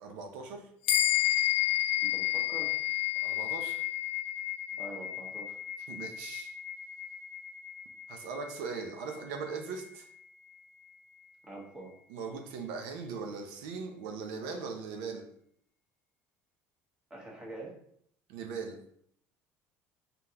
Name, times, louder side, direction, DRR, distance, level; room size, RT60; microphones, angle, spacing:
voice 1, 0.0-0.7 3.2-3.8 5.9-6.5 8.1-10.1 12.1-15.2 18.3-18.8, right 5 dB, 90° right, 4 dB, 0.6 m, -39 dB
sound 1, 0.9-10.6, left 15 dB, 85° left, 0.4 m, -32 dB
voice 2, 2.0-2.7 4.8-5.6 11.4-11.9 17.1-17.7, right 2 dB, 15° right, -3 dB, 1.2 m, -45 dB
3.7 x 3.7 x 2.8 m, 0.68 s
cardioid pair, 140°, 6 cm